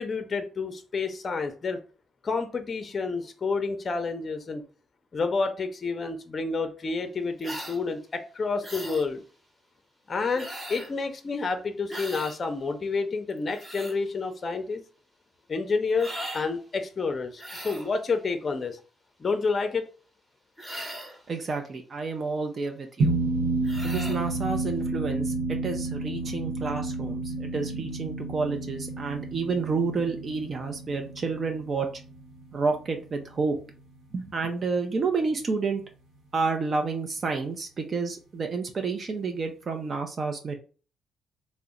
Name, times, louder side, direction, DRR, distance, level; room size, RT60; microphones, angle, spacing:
voice 1, 0.0-1.8 2.2-4.6 5.1-9.2 10.1-14.8 15.5-18.8 19.2-19.8, left 4 dB, 40° left, 0.5 m, -29 dB
sound 1, 7.4-7.8 8.6-9.1 10.4-10.9 11.9-12.4 13.3-14.0 16.0-16.5 17.4-17.9 20.6-21.2 23.6-24.2, right 1 dB, 5° right, 0.9 m, -38 dB
voice 2, 21.3-23.2 23.8-31.9 32.5-33.6 34.1-35.8 36.3-40.5, right 4 dB, 45° right, 0.5 m, -30 dB
sound 2, 23.0-33.7, right 2 dB, 65° right, 0.9 m, -31 dB
2.8 x 2.0 x 3.7 m
cardioid pair, 90°, 0 cm